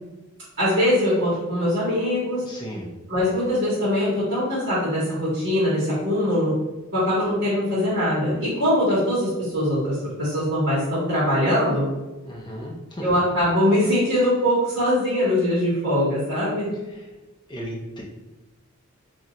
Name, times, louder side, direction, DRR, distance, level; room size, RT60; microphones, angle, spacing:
voice 1, 0.6-2.4 3.1-6.5 6.9-11.9 13.0-16.7, equal, 55° right, -10 dB, 1.4 m, -22 dB
voice 2, 2.4-2.9 12.2-13.2 17.5-18.0, equal, 20° left, -1 dB, 0.5 m, -35 dB
3.1 x 2.7 x 2.5 m, 1.1 s
head